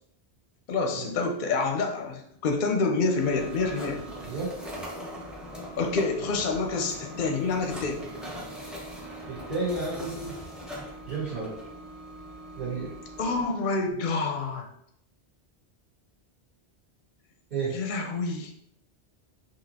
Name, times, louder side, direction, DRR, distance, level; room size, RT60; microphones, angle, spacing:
voice 1, 0.7-4.0 5.8-8.1 13.2-14.7 17.7-18.5, left 3 dB, 60° left, 3 dB, 0.7 m, -27 dB
sound 1, 3.2-13.4, equal, ahead, 0.7 m, -41 dB
voice 2, 9.3-10.3 11.1-11.5 12.5-12.9 17.5-17.7, right 3 dB, 45° right, -9 dB, 1.5 m, -31 dB
5.8 x 2.7 x 2.8 m, 0.73 s
omnidirectional pair, 1.0 m